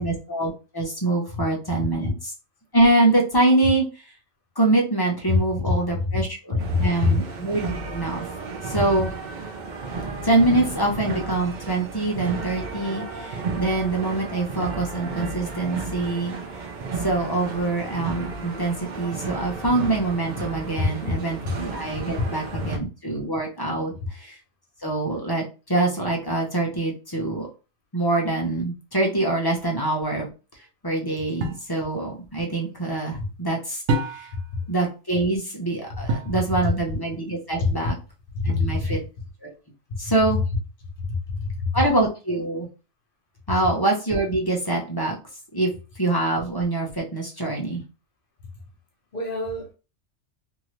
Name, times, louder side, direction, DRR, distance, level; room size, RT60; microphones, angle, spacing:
voice 1, 0.0-2.3 2.7-3.9 4.6-8.3 8.6-9.1 10.2-16.4 17.0-24.4 24.8-27.5 27.9-30.3 30.8-33.8 34.1-34.3 34.7-38.0 38.4-39.0 39.4-39.5 40.0-40.4 41.7-42.7 43.5-45.2 45.5-45.7 46.0-47.8, right 2 dB, 25° left, -1 dB, 0.7 m, -24 dB
voice 2, 5.7-6.1 6.5-7.2 22.2-22.3 34.5-34.6 36.3-36.4 37.6-37.7 38.3-38.9 41.1-41.7 49.1-49.7, left 3 dB, 50° left, 1 dB, 1.1 m, -24 dB
sound 1, 6.6-22.8, right 4 dB, 50° right, 0.7 m, -33 dB
sound 2, 31.4-31.7 33.9-34.5 36.1-36.4 38.5-39.0, right 2 dB, 85° right, 1.0 m, -27 dB
2.8 x 2.6 x 3.1 m, 0.32 s
omnidirectional pair, 1.2 m